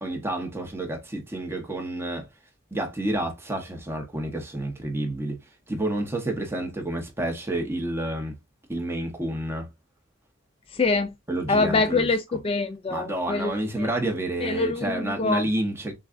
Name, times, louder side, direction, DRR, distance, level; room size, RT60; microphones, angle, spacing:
voice 1, 0.0-2.3 2.7-5.4 5.7-8.3 8.7-9.7 11.3-12.1 12.9-15.9, right 1 dB, 10° right, 1.0 m, -29 dB
voice 2, 10.7-11.1 11.5-13.5 13.8-13.9 14.4-15.4, left 3 dB, 30° left, 0.3 m, -25 dB
6.3 x 2.4 x 2.5 m
head